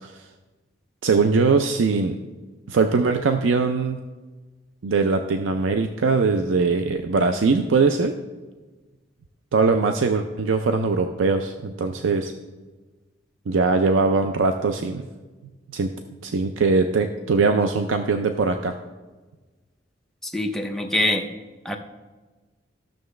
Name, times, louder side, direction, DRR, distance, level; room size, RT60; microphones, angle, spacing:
voice 1, 1.0-2.2 2.7-4.0 4.8-8.2 9.5-12.3 13.5-15.1 15.7-15.9 16.2-18.7, right 4 dB, 85° right, 7 dB, 0.5 m, -21 dB
voice 2, 20.2-21.2 21.6-21.8, left 1 dB, ahead, 2 dB, 0.6 m, -24 dB
13.0 x 6.6 x 3.2 m, 1.3 s
head